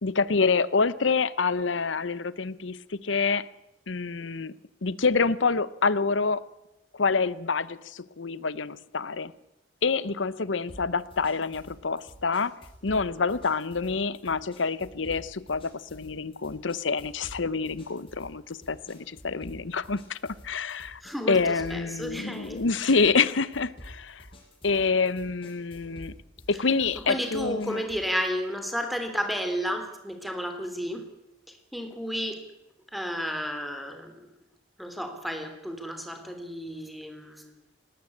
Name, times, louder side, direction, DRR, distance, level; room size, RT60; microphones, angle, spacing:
voice 1, 0.0-3.5 3.9-4.5 4.8-6.4 6.9-9.3 9.8-12.5 12.8-21.0 21.3-24.3 24.6-26.2 26.5-27.8, left 4 dB, 85° left, 18 dB, 0.9 m, -27 dB
sound 1, 10.7-28.1, equal, 30° left, 6.1 m, -49 dB
voice 2, 21.0-23.0 26.9-31.1 31.5-32.4 32.9-34.3 34.8-37.6, equal, ahead, 6 dB, 3.3 m, -32 dB
19.0 x 19.0 x 8.6 m, 0.90 s
head